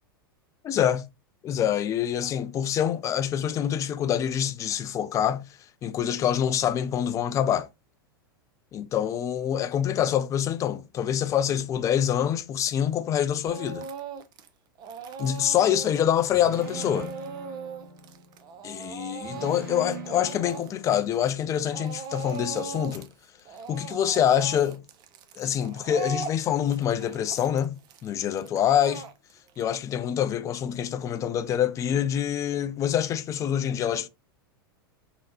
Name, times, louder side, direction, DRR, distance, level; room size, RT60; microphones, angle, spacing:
voice 1, 0.6-1.1 1.4-5.5 5.8-7.7 8.7-13.9 15.2-17.1 18.6-23.1 23.7-24.8 25.4-29.1 29.6-34.1, left 10 dB, 25° left, 0.3 m, -26 dB
Speech / Crying sobbing, 13.5-14.5 14.8-21.4 21.7-23.1 23.4-29.6, right 5 dB, 35° right, 0.4 m, -39 dB
sound 1, 16.3-18.5 19.2-21.4, right 3 dB, 70° right, 1.4 m, -41 dB
3.4 x 2.0 x 2.8 m
hypercardioid pair, 100°, 12 cm